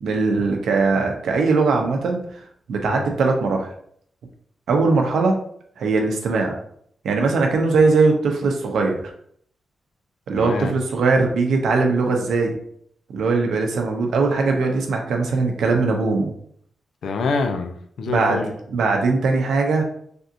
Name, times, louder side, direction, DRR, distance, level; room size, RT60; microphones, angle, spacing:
voice 1, 0.0-2.2 2.7-3.7 4.7-5.4 5.8-6.6 7.0-9.0 10.3-12.6 13.1-16.3 18.1-18.4 18.7-19.8, right 3 dB, 90° right, 2 dB, 0.6 m, -20 dB
voice 2, 10.3-10.7 17.0-18.5, left 4 dB, 80° left, 6 dB, 0.4 m, -26 dB
3.4 x 2.7 x 2.5 m, 0.65 s
wide cardioid pair, 155°, 0 cm